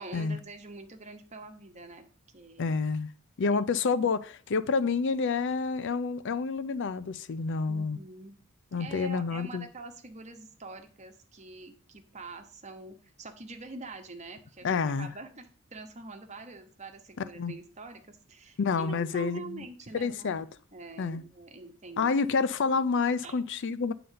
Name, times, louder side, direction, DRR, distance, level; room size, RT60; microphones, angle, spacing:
voice 1, 0.0-2.0 2.3-2.8 7.7-8.4 8.7-20.4 20.7-22.5 23.2-23.4, right 3 dB, 35° right, 1.2 m, -45 dB
voice 2, 2.6-3.1 3.4-8.0 8.7-9.7 14.6-15.1 17.4-17.5 18.6-19.6 19.9-20.5 21.0-21.2 22.0-23.9, left 4 dB, 55° left, 0.5 m, -28 dB
9.4 x 3.9 x 6.6 m
head